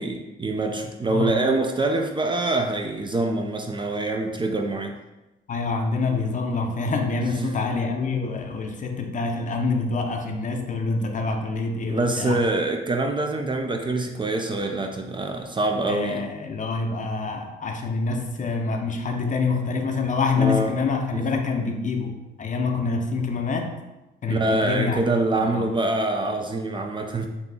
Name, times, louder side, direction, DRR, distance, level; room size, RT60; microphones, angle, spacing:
voice 1, 0.0-4.9 7.4-7.7 11.9-16.2 20.4-20.7 21.1-21.2 24.3-27.3, right 2 dB, 25° right, 3 dB, 0.4 m, -25 dB
voice 2, 1.1-1.4 5.5-12.4 15.9-23.8 24.2-25.0 25.4-25.7, left 4 dB, 40° left, 4 dB, 0.6 m, -26 dB
4.0 x 2.8 x 3.5 m, 1.0 s
cardioid pair, 90°, 20 cm